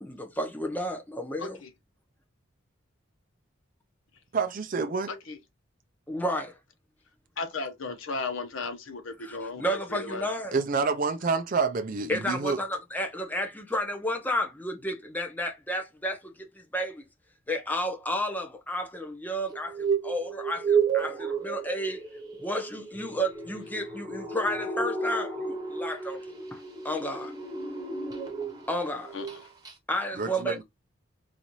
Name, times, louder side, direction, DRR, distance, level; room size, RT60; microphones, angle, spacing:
voice 1, 0.0-1.6 6.1-6.6 9.2-10.5 12.1-17.0 17.5-22.0 22.4-27.3 28.7-29.2 29.9-30.6, equal, 10° left, 0.7 m, -32 dB
voice 2, 4.3-5.1 10.5-12.6 30.2-30.6, right 4 dB, 45° right, 0.5 m, -28 dB
voice 3, 7.4-10.3 29.1-29.3, left 3 dB, 90° left, 0.9 m, -35 dB
sound 1, 19.5-28.8 29.1-29.4 29.7-29.8, right 5 dB, 20° right, 0.9 m, -32 dB
4.0 x 2.5 x 3.0 m
head